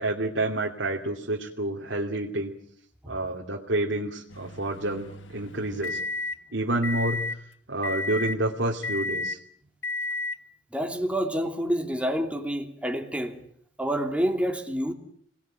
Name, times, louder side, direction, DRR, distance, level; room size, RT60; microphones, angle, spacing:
voice 1, 0.0-2.5 3.1-6.0 6.5-7.4 7.7-9.4, right 1 dB, 75° right, 2.7 m, -29 dB
sound 1, 4.3-6.4 6.8-7.4 7.8-8.4 8.8-9.4 9.8-10.4, left 2 dB, 80° left, 1.2 m, -32 dB
voice 2, 10.7-13.4 13.8-14.9, equal, 5° right, 2.9 m, -28 dB
28.0 x 20.0 x 9.1 m
head